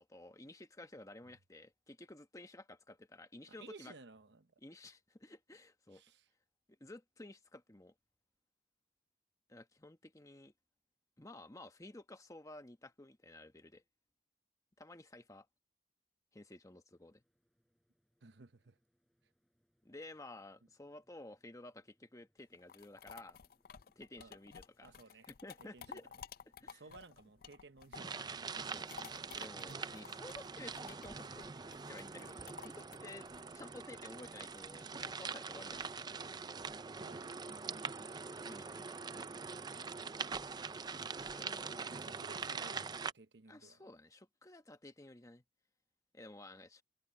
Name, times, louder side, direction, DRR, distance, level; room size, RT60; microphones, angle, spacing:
voice 1, 0.0-3.9 4.6-6.0 6.8-7.9 9.5-10.5 11.2-13.8 14.8-15.5 16.3-17.2 19.8-23.4 24.0-24.9 25.4-26.1 26.6-26.8 28.5-28.9 29.3-31.5 31.9-33.3 33.5-36.1 38.4-39.3 41.3-41.8 43.5-45.4 46.1-46.8, left 2 dB, 20° left, 1.1 m, -53 dB
voice 2, 3.5-4.5 5.9-6.3 18.2-18.8 24.2-24.4 24.8-25.3 25.6-26.0 26.6-28.2 29.3-30.0 37.0-38.2 41.4-43.8, right 3 dB, 70° right, 1.0 m, -57 dB
sound 1, 16.9-36.5, equal, ahead, 7.0 m, -79 dB
sound 2, 22.4-28.2 28.5-34.8, left 7 dB, 55° left, 0.5 m, -54 dB
sound 3, 27.9-43.1, right 5 dB, 25° right, 0.5 m, -44 dB
head